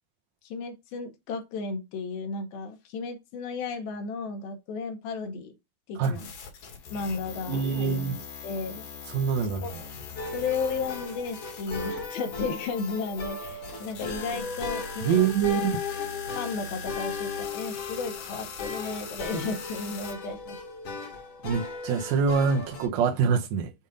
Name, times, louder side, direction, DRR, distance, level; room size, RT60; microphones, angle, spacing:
voice 1, 0.4-5.5 5.9-6.2 6.9-8.0 8.4-8.9 9.6-9.7 10.3-15.6 16.4-20.6, left 4 dB, 80° left, 2.8 m, -34 dB
sound 1, 6.0-20.1, left 5 dB, 65° left, 3.1 m, -41 dB
voice 2, 7.4-8.2 9.1-9.6 15.0-15.8 21.4-23.7, right 6 dB, 80° right, 1.5 m, -25 dB
sound 2, 10.2-22.9, left 4 dB, 50° left, 1.7 m, -37 dB
7.0 x 2.5 x 5.4 m
omnidirectional pair, 4.4 m